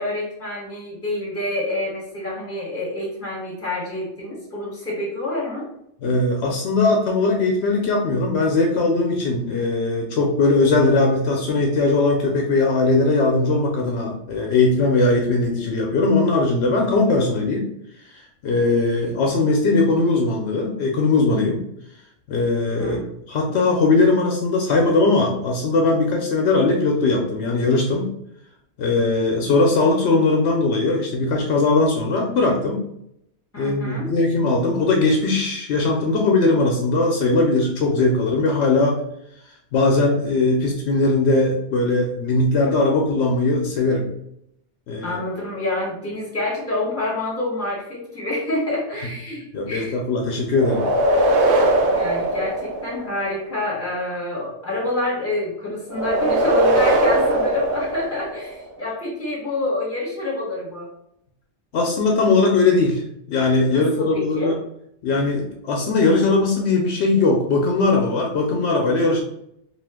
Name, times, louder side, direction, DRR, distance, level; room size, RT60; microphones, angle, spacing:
voice 1, 0.0-5.7 22.8-23.0 33.5-34.1 45.0-49.9 51.9-60.9 63.7-64.5, left 2 dB, 15° left, -5 dB, 1.2 m, -27 dB
voice 2, 6.0-17.7 18.1-21.6 22.3-23.0 23.3-28.1 28.8-32.8 33.6-39.0 39.7-44.1 44.9-45.2 49.5-50.8 61.7-63.0 63.3-64.6 65.0-69.2, left 3 dB, 75° left, 1 dB, 0.8 m, -19 dB
sound 1, 50.5-53.3 55.9-58.6, right 1 dB, 60° right, 0.6 m, -20 dB
2.5 x 2.5 x 3.4 m, 0.75 s
omnidirectional pair, 1.2 m